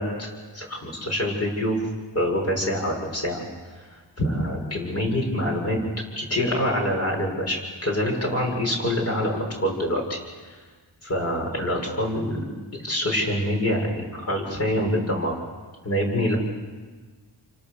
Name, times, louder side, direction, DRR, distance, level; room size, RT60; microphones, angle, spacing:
voice 1, 0.0-1.8 2.1-3.4 3.8-5.8 6.2-10.2 11.0-12.5 12.8-15.3 15.8-16.4, equal, 35° left, 0 dB, 7.2 m, -25 dB
30.0 x 26.5 x 7.0 m, 1.4 s
wide cardioid pair, 140°, 42 cm